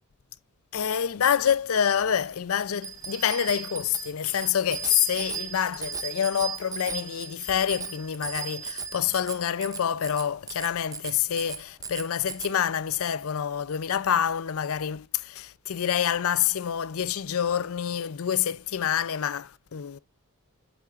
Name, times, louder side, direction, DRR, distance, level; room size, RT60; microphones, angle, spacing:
voice 1, 0.7-20.0, left 9 dB, 70° left, 0.5 m, -27 dB
Bicycle bell, 2.8-12.5, right 6 dB, 15° right, 0.5 m, -36 dB
8.7 x 8.5 x 2.4 m
head